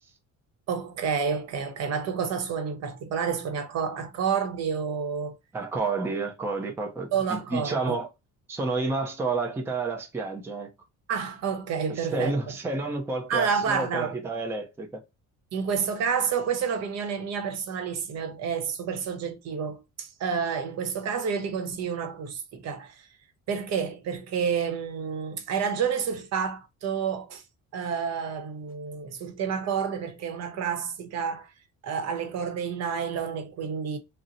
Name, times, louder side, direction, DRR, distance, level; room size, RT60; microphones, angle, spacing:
voice 1, 0.7-5.4 7.1-8.0 11.1-12.3 13.3-14.2 15.5-23.1 23.5-27.4 27.7-31.5 31.8-34.0, right 6 dB, 55° right, 0.8 m, -29 dB
voice 2, 5.5-8.1 8.5-10.7 11.9-15.0, right 3 dB, 10° right, 0.5 m, -30 dB
4.0 x 2.0 x 2.5 m
cardioid pair, 165°, 31 cm